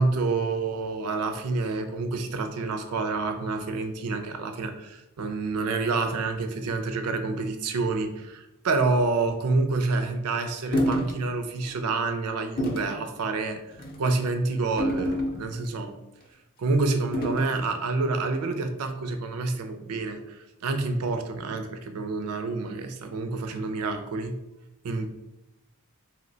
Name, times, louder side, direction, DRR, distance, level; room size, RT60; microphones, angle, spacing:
voice 1, 0.0-13.6 14.0-15.9 16.6-24.4 24.8-25.1, right 3 dB, 75° right, 7 dB, 0.4 m, -28 dB
sound 1, 10.7-11.2 11.6-11.8 12.6-12.9 13.7-14.0 14.8-15.7 17.1-17.6, equal, 40° left, 0.5 m, -28 dB
2.9 x 2.1 x 3.8 m, 0.93 s
head